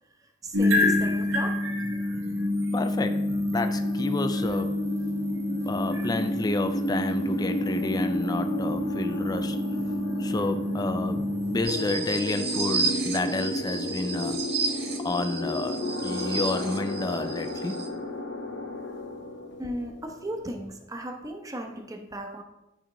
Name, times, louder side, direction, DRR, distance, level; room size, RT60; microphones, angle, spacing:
voice 1, 0.4-1.6 19.6-22.4, right 1 dB, 15° right, 0.7 m, -36 dB
sound 1, 0.5-11.6, left 2 dB, 90° right, 1.2 m, -28 dB
voice 2, 2.7-4.9 5.6-9.6 10.2-11.3 11.5-14.5 15.0-17.8, left 2 dB, 20° left, 0.3 m, -30 dB
sound 2, 3.8-20.7, equal, 60° left, 0.7 m, -33 dB
sound 3, 11.6-17.9, right 3 dB, 55° right, 0.8 m, -32 dB
11.0 x 4.9 x 2.9 m
head